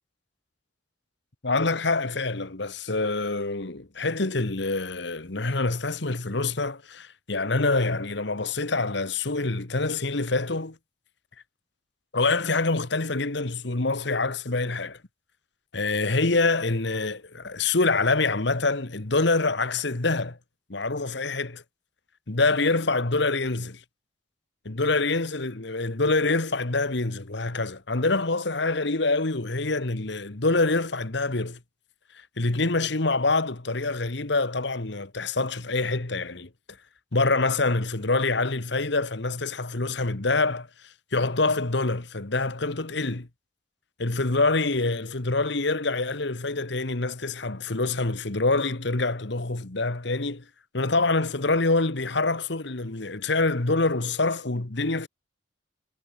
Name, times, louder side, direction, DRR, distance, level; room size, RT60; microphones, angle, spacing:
voice 1, 1.4-10.8 12.1-15.0 15.7-20.4 20.7-21.6 22.3-23.8 24.6-31.6 32.1-36.5 37.1-43.3 44.0-50.4 50.7-55.1, left 3 dB, 60° left, 1.5 m, -26 dB
head